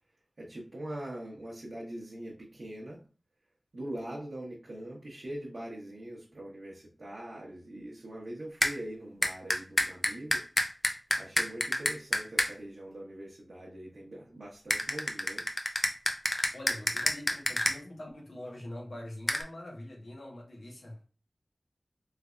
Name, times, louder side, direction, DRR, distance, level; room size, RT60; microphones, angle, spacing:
voice 1, 0.4-3.0 3.7-10.4 11.2-15.4, right 1 dB, 75° right, -5 dB, 0.9 m, -42 dB
sound 1, 8.6-8.7 9.2-12.5 14.7-17.7 19.3-19.4, left 1 dB, 40° left, 0.6 m, -28 dB
voice 2, 16.5-21.1, left 1 dB, 90° left, -1 dB, 1.0 m, -44 dB
3.3 x 3.3 x 2.4 m, 0.36 s
wide cardioid pair, 40°, 0 cm